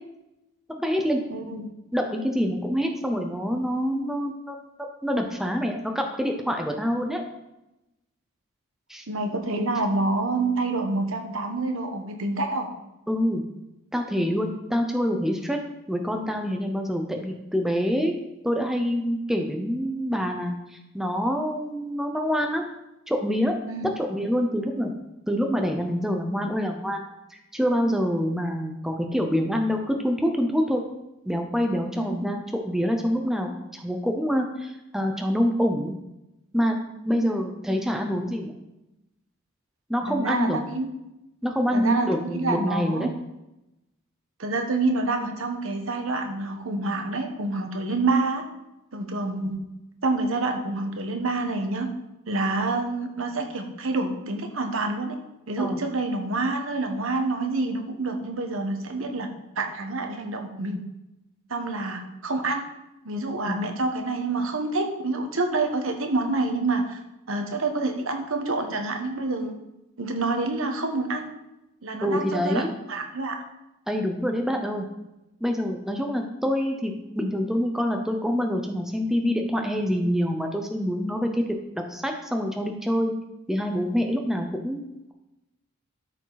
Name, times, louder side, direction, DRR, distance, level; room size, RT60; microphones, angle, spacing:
voice 1, 0.8-1.2 1.9-4.6 5.0-7.2 8.9-9.0 13.1-13.4 13.9-15.6 15.9-18.1 18.4-20.5 20.9-22.6 23.1-23.5 24.0-24.9 25.3-27.0 27.3-30.8 31.3-35.9 36.5-36.8 37.0-38.6 39.9-40.6 41.4-43.1 55.6-55.8 63.4-63.7 72.0-72.7 73.9-74.9 75.4-81.4 81.9-83.1 83.5-84.8, equal, ahead, 3 dB, 0.7 m, -26 dB
voice 2, 1.3-1.7 9.1-12.7 23.7-23.9 32.0-32.1 37.2-37.3 40.1-40.9 41.7-43.1 44.4-48.4 48.9-49.6 50.0-51.9 52.3-55.2 55.5-59.3 59.6-60.8 61.5-62.6 63.0-67.0 67.3-69.5 70.0-71.3 71.8-73.4, right 3 dB, 75° right, 5 dB, 1.2 m, -27 dB
13.0 x 5.0 x 4.0 m, 0.94 s
head